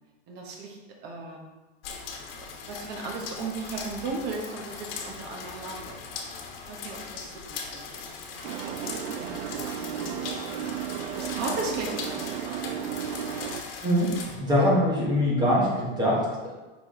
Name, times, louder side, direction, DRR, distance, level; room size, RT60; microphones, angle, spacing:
voice 1, 0.3-1.5 2.4-6.0 6.7-10.2 11.2-12.7, right 3 dB, 35° right, 1 dB, 1.1 m, -37 dB
sound 1, 1.8-14.4, left 5 dB, 70° left, 1.2 m, -39 dB
sound 2, 8.4-13.6, right 9 dB, 80° right, 0.5 m, -34 dB
voice 2, 14.4-16.5, equal, 15° right, -6 dB, 1.2 m, -23 dB
5.3 x 4.7 x 3.8 m, 1.2 s
supercardioid pair, 155°, 29 cm